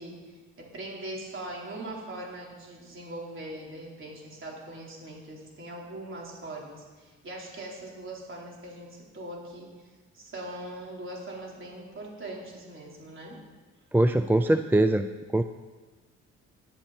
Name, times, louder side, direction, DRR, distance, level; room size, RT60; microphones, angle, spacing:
voice 1, 0.0-9.7 10.1-13.4, right 1 dB, 40° right, -3 dB, 4.6 m, -41 dB
voice 2, 13.9-15.1 15.3-15.4, right 1 dB, 5° right, 9 dB, 0.5 m, -22 dB
19.0 x 10.5 x 4.5 m, 1.3 s
cardioid pair, 90°, 30 cm